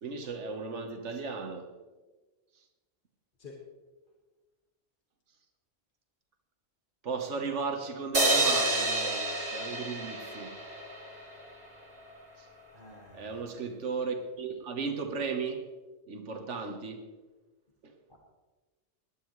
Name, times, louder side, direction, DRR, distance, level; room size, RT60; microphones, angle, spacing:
voice 1, 0.0-1.7 7.0-10.5 12.4-12.5 13.1-15.6 16.1-17.1 17.8-18.0, right 4 dB, 80° right, 4 dB, 1.6 m, -35 dB
sound 1, 8.1-11.5, right 2 dB, 35° right, 2.4 m, -29 dB
voice 2, 12.7-13.3 18.1-18.2, left 3 dB, 45° left, -2 dB, 2.0 m, -49 dB
19.0 x 11.5 x 3.2 m, 1.2 s
omnidirectional pair, 1.2 m